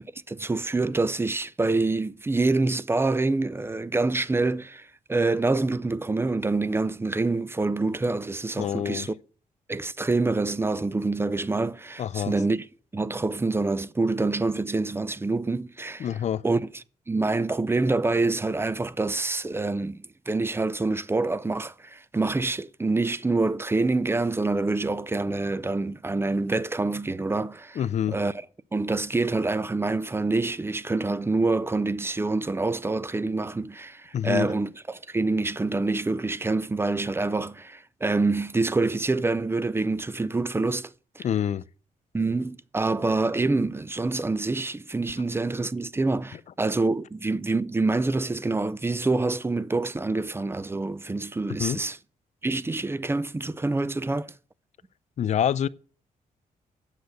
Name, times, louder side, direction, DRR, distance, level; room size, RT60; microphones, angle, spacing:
voice 1, 0.3-9.2 9.7-12.7 12.9-16.1 16.4-27.8 28.1-28.4 28.7-41.3 42.1-52.0 52.4-54.3, right 3 dB, 15° right, 0.5 m, -26 dB
voice 2, 8.6-9.1 12.0-12.3 16.0-16.4 27.8-28.2 34.1-34.5 41.2-41.6 51.6-51.8 55.2-55.7, left 9 dB, 50° left, 0.4 m, -26 dB
8.1 x 6.6 x 7.7 m
cardioid pair, 90°, 15 cm